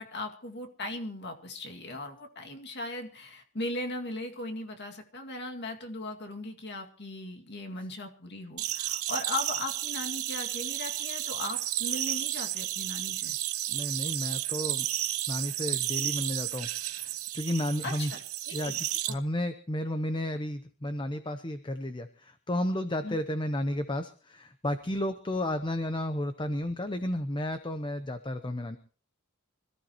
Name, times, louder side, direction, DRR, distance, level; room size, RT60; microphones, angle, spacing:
voice 1, 0.0-13.4 17.8-18.2 18.5-19.2 23.0-23.2, left 2 dB, 50° left, 3 dB, 2.2 m, -38 dB
sound 1, 8.6-19.1, right 13 dB, 80° right, 1.1 m, -32 dB
voice 2, 13.7-14.9 15.3-18.1 18.5-28.8, left 1 dB, 20° left, 9 dB, 0.8 m, -32 dB
26.0 x 14.5 x 3.0 m, 0.41 s
head